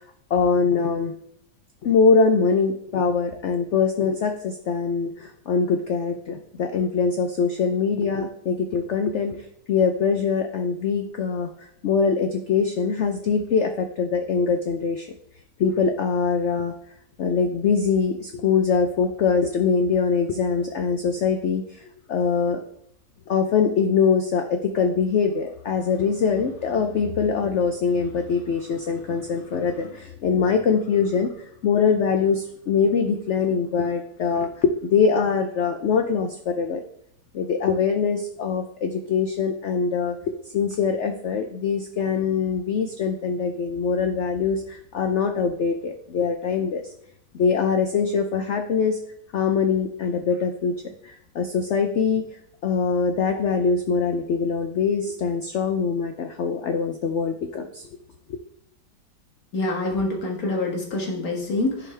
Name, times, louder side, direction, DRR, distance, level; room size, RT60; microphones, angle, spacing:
voice 1, 0.3-1.1 1.8-15.1 15.6-16.7 17.2-21.8 22.1-22.6 23.3-36.8 37.3-46.8 47.3-49.0 49.3-52.2 52.6-57.9 58.3-58.4, left 5 dB, 85° left, 6 dB, 0.6 m, -23 dB
voice 2, 59.5-61.9, left 2 dB, 55° left, -1 dB, 1.9 m, -26 dB
10.5 x 5.1 x 3.3 m, 0.71 s
omnidirectional pair, 1.9 m